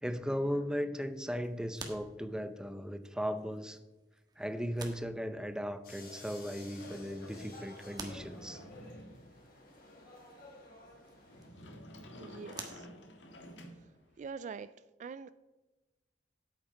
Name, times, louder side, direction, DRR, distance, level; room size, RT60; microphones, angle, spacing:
voice 1, 0.0-3.8 4.4-8.6, equal, 5° right, 10 dB, 0.6 m, -37 dB
sound 1, 1.0-13.9, right 3 dB, 25° right, 1.3 m, -54 dB
sound 2, 5.8-11.5, left 2 dB, 55° left, 3.2 m, -53 dB
Sliding door, 6.8-14.3, left 1 dB, 90° left, 1.6 m, -52 dB
voice 2, 12.2-12.9 13.8-13.9 14.2-14.7 15.0-15.3, right 5 dB, 45° right, 14 dB, 0.3 m, -44 dB
8.6 x 8.0 x 5.0 m, 1.1 s
head